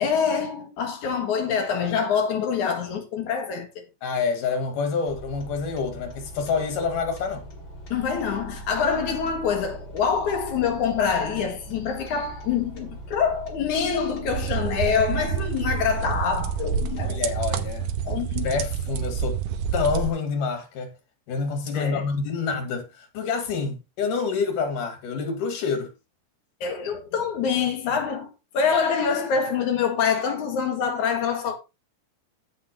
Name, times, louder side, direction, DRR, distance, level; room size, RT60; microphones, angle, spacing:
voice 1, 0.0-3.7 7.9-17.2 18.1-18.5 21.7-22.1 26.6-31.6, left 6 dB, 70° left, 3.2 m, -25 dB
voice 2, 4.0-7.5 17.0-18.0 18.4-19.4 19.7-20.9 21.3-25.9, left 5 dB, 90° left, 3.6 m, -27 dB
sound 1, 5.1-17.1, right 1 dB, 40° left, 2.9 m, -41 dB
sound 2, 14.3-20.1, right 7 dB, 85° right, 2.4 m, -28 dB
15.5 x 5.8 x 3.0 m
omnidirectional pair, 3.6 m